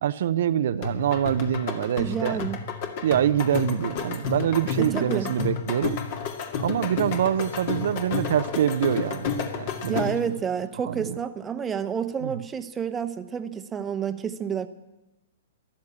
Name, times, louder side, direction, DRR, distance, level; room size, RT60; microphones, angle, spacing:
voice 1, 0.0-2.4 3.0-6.0 6.6-10.1 10.8-11.2 12.2-12.3, right 10 dB, 65° right, 11 dB, 0.6 m, -25 dB
sound 1, 0.8-10.3, left 6 dB, 50° left, 2.1 m, -31 dB
voice 2, 1.9-2.6 4.8-5.3 9.9-14.7, right 7 dB, 15° right, 10 dB, 0.9 m, -29 dB
14.0 x 11.5 x 8.6 m, 1.1 s
hypercardioid pair, 125°, 0 cm